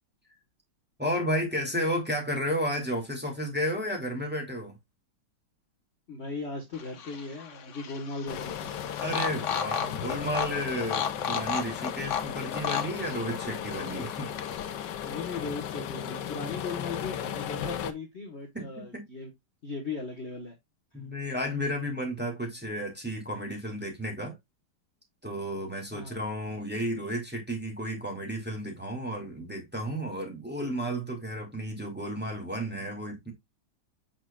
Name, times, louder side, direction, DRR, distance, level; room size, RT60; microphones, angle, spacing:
voice 1, 1.0-4.8 9.0-14.3 18.5-19.1 20.9-24.4 25.2-33.3, equal, 5° right, 2.5 m, -32 dB
voice 2, 6.1-8.7 15.0-19.3 19.6-20.6 20.9-21.0 25.9-26.2, left 3 dB, 35° left, 1.6 m, -38 dB
sound 1, 6.7-14.9, left 7 dB, 50° left, 0.9 m, -35 dB
sound 2, 8.3-17.9, left 9 dB, 65° left, 1.3 m, -36 dB
7.3 x 6.1 x 2.4 m
omnidirectional pair, 2.2 m